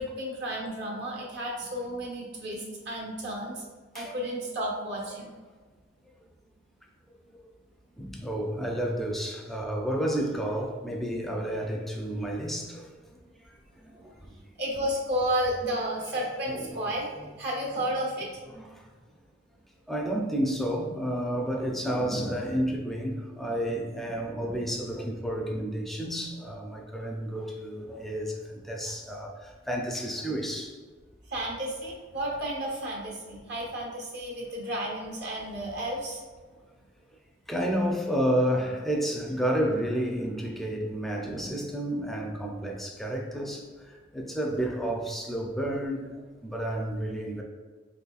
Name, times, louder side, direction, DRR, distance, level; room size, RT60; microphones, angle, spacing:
voice 1, 0.0-3.6 3.9-5.3 13.9-14.0 14.3-18.4 31.3-36.2, right 1 dB, 60° right, -2 dB, 1.0 m, -32 dB
voice 2, 8.0-12.9 13.5-14.3 15.6-15.8 16.5-16.9 18.5-18.8 19.9-30.8 37.5-47.4, right 1 dB, ahead, 0 dB, 0.4 m, -31 dB
4.0 x 3.0 x 2.4 m, 1.4 s
head